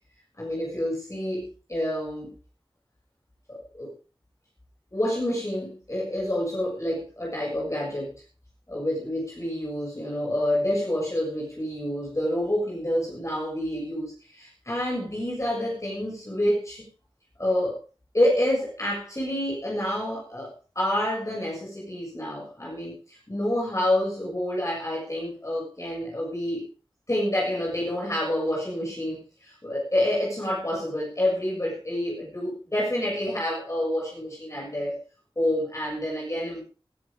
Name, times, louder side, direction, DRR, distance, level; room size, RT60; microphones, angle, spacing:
voice 1, 0.4-2.3 3.5-3.9 4.9-8.1 8.7-16.8 17.4-17.8 18.1-26.6 27.1-35.0 35.4-36.6, left 1 dB, 30° left, -4 dB, 6.9 m, -28 dB
19.0 x 11.5 x 3.7 m, 0.36 s
wide cardioid pair, 65°, 10 cm